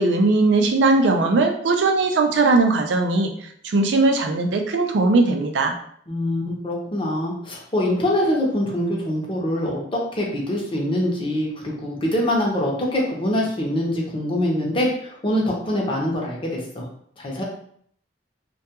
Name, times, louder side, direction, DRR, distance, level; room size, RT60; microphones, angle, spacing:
voice 1, 0.0-3.3 3.6-5.7, right 3 dB, 80° right, 4 dB, 0.4 m, -19 dB
voice 2, 6.1-16.8 17.2-17.4, left 1 dB, 30° left, -2 dB, 0.6 m, -24 dB
2.2 x 2.2 x 2.8 m, 0.63 s
head